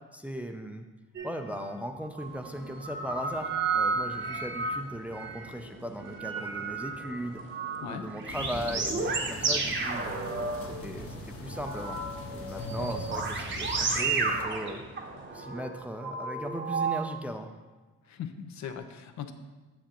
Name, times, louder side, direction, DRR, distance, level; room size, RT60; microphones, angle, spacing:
voice 1, 0.1-0.9 1.2-7.4 7.8-10.2 10.6-12.0 12.3-14.8 15.3-17.6, equal, 5° right, 5 dB, 0.4 m, -38 dB
sound 1, 1.1-1.7 2.0-5.6 6.0-11.2 11.5-17.2 18.6-18.8, right 4 dB, 40° right, 0.9 m, -32 dB
sound 2, 2.2-15.5, right 1 dB, 85° right, 2.2 m, -51 dB
sound 3, 8.3-14.5, left 1 dB, 45° left, 1.0 m, -41 dB
voice 2, 18.0-19.3, left 8 dB, 65° left, 7 dB, 0.6 m, -39 dB
7.6 x 6.5 x 2.9 m, 1.2 s
cardioid pair, 90°, 30 cm